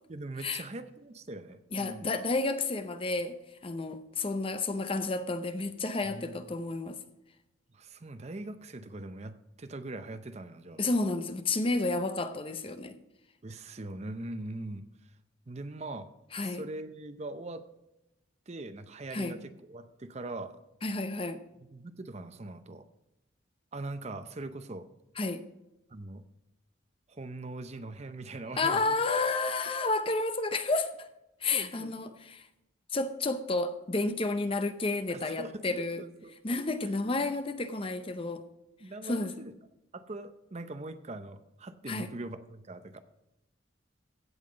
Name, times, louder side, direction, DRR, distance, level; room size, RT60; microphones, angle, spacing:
voice 1, 0.1-2.1 6.0-6.5 7.7-10.8 13.4-14.9 15.5-16.1 16.4-17.7 18.5-20.6 21.6-22.9 23.7-24.9 25.9-26.2 27.1-29.0 31.5-32.2 35.1-35.5 36.0-36.6 38.8-39.5 39.9-43.0, right 2 dB, 30° right, 0.6 m, -42 dB
voice 2, 1.7-3.4 3.6-7.0 10.8-12.9 16.3-16.6 19.1-19.4 20.8-21.4 25.2-25.5 28.6-30.9 31.4-32.4 32.9-36.0 36.4-38.4 39.0-39.3 41.9-42.1, left 3 dB, 25° left, 0.6 m, -31 dB
16.0 x 5.7 x 5.0 m
head